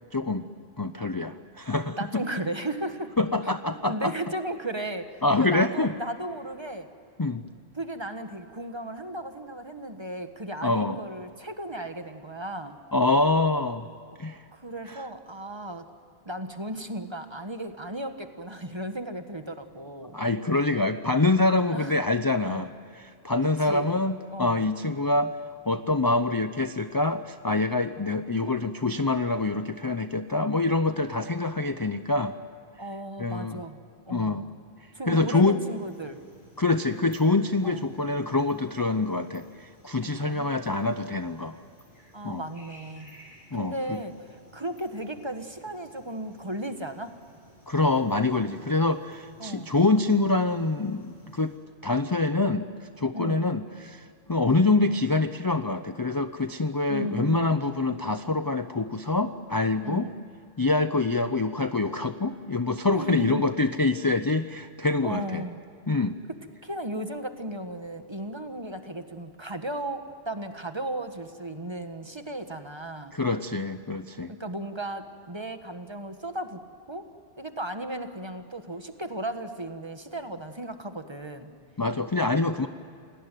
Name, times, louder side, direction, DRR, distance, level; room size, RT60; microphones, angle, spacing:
voice 1, 0.1-0.5 0.8-2.2 3.2-4.1 5.2-5.9 7.2-7.4 10.6-11.0 12.9-13.9 14.2-14.4 14.9-15.1 20.1-25.4 25.7-32.3 33.2-33.6 34.1-34.4 35.1-35.6 36.6-41.6 42.2-42.4 43.5-44.0 47.7-51.6 51.8-52.7 53.0-60.1 60.6-65.4 65.9-66.2 73.1-74.3 81.8-82.7, left 2 dB, 25° left, 9 dB, 0.6 m, -25 dB
voice 2, 2.0-3.1 3.7-6.9 7.8-12.8 14.0-14.2 14.5-15.9 16.2-20.2 21.7-21.9 22.5-22.7 23.6-23.9 24.3-24.7 32.8-33.8 34.1-34.5 34.9-36.2 37.6-37.8 40.2-40.5 42.1-43.1 43.5-47.1 49.4-49.7 53.1-53.5 56.9-57.5 59.8-60.1 62.9-63.4 65.0-65.6 66.6-73.2 74.3-76.6 76.9-77.0 77.4-81.5, right 1 dB, 25° right, 7 dB, 1.5 m, -35 dB
sound 1, 35.7-51.6, equal, 50° left, 8.2 m, -56 dB
28.5 x 18.5 x 9.2 m, 2.5 s
omnidirectional pair, 1.1 m